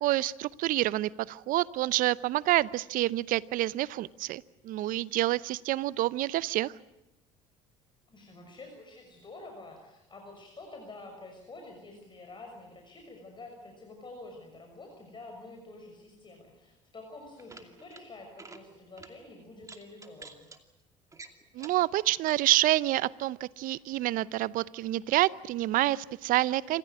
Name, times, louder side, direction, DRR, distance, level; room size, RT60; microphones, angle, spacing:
voice 1, 0.0-6.7 21.5-26.8, right 16 dB, 60° right, 20 dB, 0.7 m, -28 dB
voice 2, 8.1-20.5, left 2 dB, 30° left, 2 dB, 6.3 m, -48 dB
sound 1, 17.3-18.0 18.3-18.6 19.0-19.1 19.6-20.6 21.1-21.8 22.2-22.7, right 3 dB, 20° right, 2.6 m, -49 dB
27.0 x 15.0 x 9.6 m, 0.91 s
hypercardioid pair, 70°, 16 cm